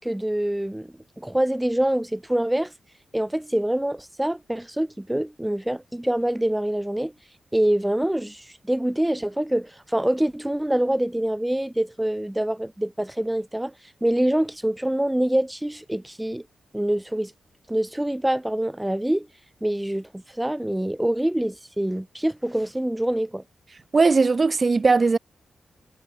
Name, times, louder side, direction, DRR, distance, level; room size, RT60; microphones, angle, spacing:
voice 1, 0.0-2.7 3.1-7.1 7.5-13.7 14.0-16.4 16.7-17.3 17.7-19.3 19.6-23.4, right 1 dB, 5° right, 4.3 m, -25 dB
voice 2, 23.9-25.2, right 4 dB, 30° right, 2.1 m, -18 dB
wide cardioid pair, 150°, 0 cm